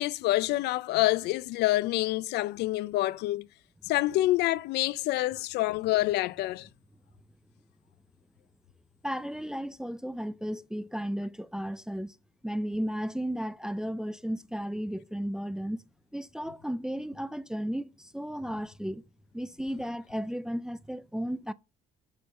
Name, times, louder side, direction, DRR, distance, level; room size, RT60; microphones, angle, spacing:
voice 1, 0.0-3.5 3.8-6.7, left 17 dB, 80° left, 0.4 m, -27 dB
voice 2, 9.0-12.2 12.4-15.8 16.1-19.0 19.3-21.5, equal, 5° right, 0.3 m, -34 dB
6.6 x 4.4 x 5.4 m
cardioid pair, 110°, 17 cm